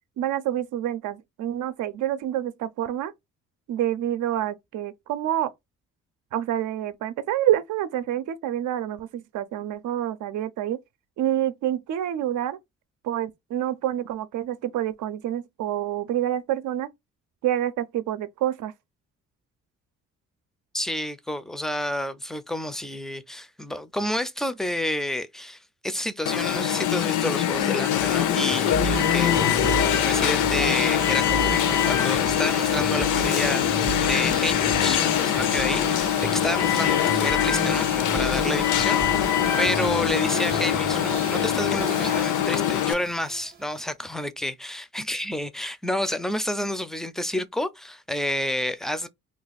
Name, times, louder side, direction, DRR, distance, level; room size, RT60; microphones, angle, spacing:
voice 1, 0.2-3.1 3.7-5.5 6.3-10.8 11.2-12.6 13.0-16.9 17.4-18.7, right 12 dB, 75° right, 0.6 m, -27 dB
voice 2, 20.7-49.1, left 1 dB, ahead, 0.4 m, -30 dB
Alarm, 26.3-42.9, left 11 dB, 80° left, 0.6 m, -23 dB
sound 1, 28.5-43.9, right 6 dB, 35° right, 0.7 m, -34 dB
2.5 x 2.4 x 4.0 m
cardioid pair, 90°, 30 cm